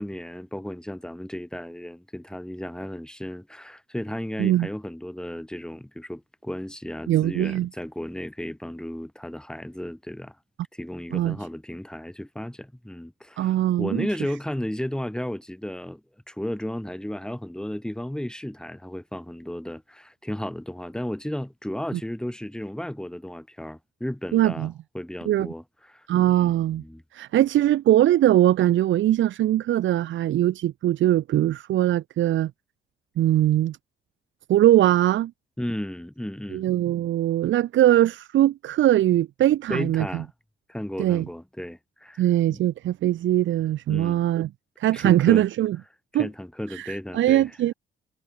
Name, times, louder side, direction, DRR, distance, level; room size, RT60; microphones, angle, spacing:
voice 1, 0.0-10.4 10.7-16.0 16.3-24.7 24.9-26.1 26.4-27.0 35.6-36.7 39.7-40.3 40.7-42.6 43.9-44.3 44.9-45.4 46.2-47.5, left 1 dB, 5° left, 5.0 m, -34 dB
voice 2, 7.1-7.7 11.1-11.4 13.4-14.1 24.3-24.7 25.2-25.5 26.1-26.8 27.1-32.5 33.2-33.8 34.5-35.3 36.5-40.2 41.0-41.2 42.2-44.5 44.8-45.8 46.1-46.3 46.7-47.7, right 13 dB, 75° right, 1.1 m, -21 dB
cardioid pair, 90°, 20 cm